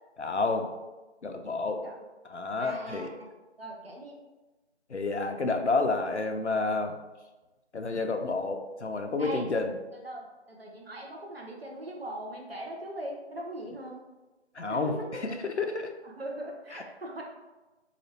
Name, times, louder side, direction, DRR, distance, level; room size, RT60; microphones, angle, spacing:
voice 1, 0.2-0.7 1.2-1.9 2.2-3.1 4.9-6.9 7.7-9.7 14.6-14.9 15.2-15.9 16.7-16.8, left 3 dB, 75° left, 5 dB, 0.7 m, -30 dB
voice 2, 2.6-3.3 3.6-4.2 9.2-9.5 9.9-14.0 14.7-15.1 16.0-17.2, right 1 dB, 60° right, 0 dB, 1.0 m, -40 dB
4.0 x 2.5 x 4.4 m, 1.1 s
figure-of-eight pair, 160°, 34 cm